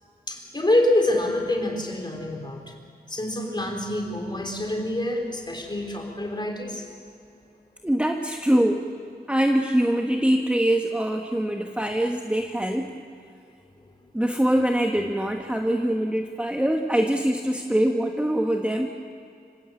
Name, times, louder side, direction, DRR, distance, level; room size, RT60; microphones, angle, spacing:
voice 1, 0.3-2.7 3.1-7.0, left 1 dB, 25° left, 2 dB, 3.9 m, -26 dB
voice 2, 7.8-8.8 9.3-12.9 14.1-18.9, right 1 dB, 5° right, 2 dB, 1.2 m, -23 dB
26.0 x 16.0 x 8.8 m, 2.4 s
wide cardioid pair, 110°, 17 cm